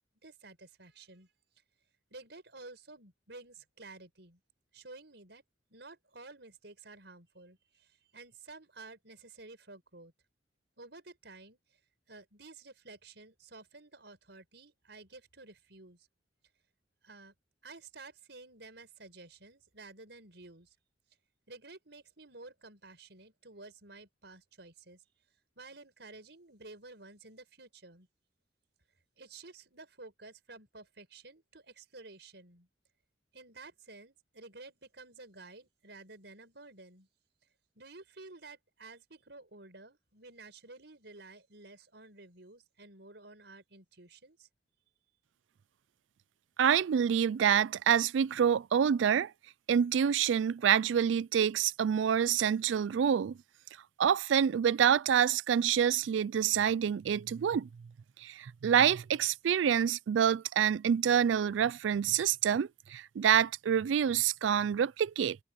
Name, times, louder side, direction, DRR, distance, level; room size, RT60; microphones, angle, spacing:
voice 1, 0.2-1.3 2.1-4.4 4.7-5.4 5.7-10.1 10.8-11.8 12.1-16.1 17.0-17.3 17.6-20.8 21.5-25.0 25.6-28.1 29.2-32.7 33.3-37.1 37.8-44.5, right 3 dB, 65° right, 5.7 m, -52 dB
voice 2, 46.6-49.3 49.7-53.4 54.0-57.7 58.2-65.4, right 8 dB, 85° right, 0.4 m, -27 dB
head